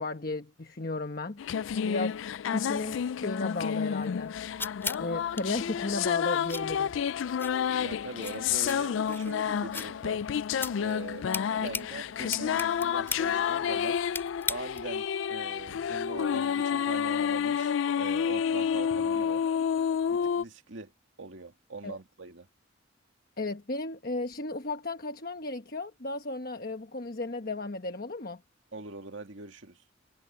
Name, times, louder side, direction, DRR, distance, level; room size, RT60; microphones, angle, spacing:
voice 1, 0.0-1.4 1.8-2.2 2.5-4.4 5.0-6.9 21.8-22.0 23.4-28.4, left 2 dB, 50° left, 1.2 m, -34 dB
sound 1, 1.4-20.4, left 7 dB, 75° left, 0.3 m, -30 dB
sound 2, 4.0-15.0, left 3 dB, 10° left, 7.6 m, -40 dB
voice 2, 7.8-10.2 10.8-11.3 11.6-14.0 14.5-19.4 20.1-20.9 21.2-22.5 28.7-29.8, right 3 dB, 70° right, 2.0 m, -42 dB
head